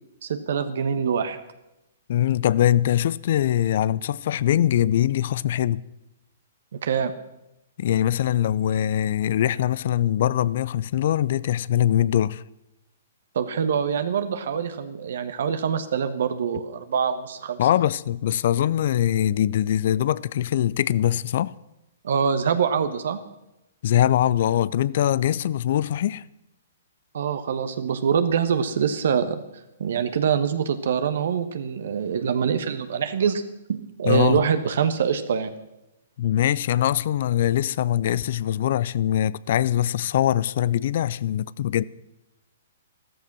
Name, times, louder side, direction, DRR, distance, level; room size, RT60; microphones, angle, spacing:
voice 1, 0.2-1.4 6.8-7.1 13.3-17.6 22.0-23.2 27.1-29.4 29.8-33.4 33.7-35.5, right 7 dB, 60° right, 1.2 m, -24 dB
voice 2, 2.1-5.8 7.8-12.4 17.6-21.5 23.8-26.2 34.0-34.4 36.2-41.8, left 11 dB, 55° left, 0.5 m, -22 dB
14.0 x 14.0 x 6.1 m
figure-of-eight pair, 115°, 0 cm